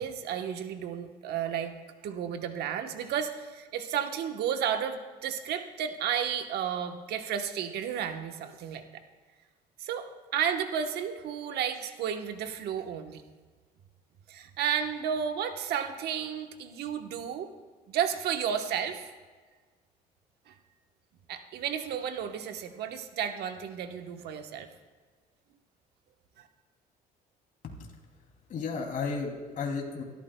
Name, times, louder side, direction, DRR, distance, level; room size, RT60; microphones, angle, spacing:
voice 1, 0.0-1.7 2.0-8.9 9.8-13.2 14.3-17.5 17.9-19.1 20.5-20.6 21.3-24.7 26.4-26.5, right 8 dB, 75° right, 6 dB, 1.1 m, -32 dB
voice 2, 28.5-30.0, left 4 dB, 50° left, 0 dB, 2.9 m, -33 dB
25.0 x 13.0 x 2.3 m, 1.4 s
cardioid pair, 110°, 17 cm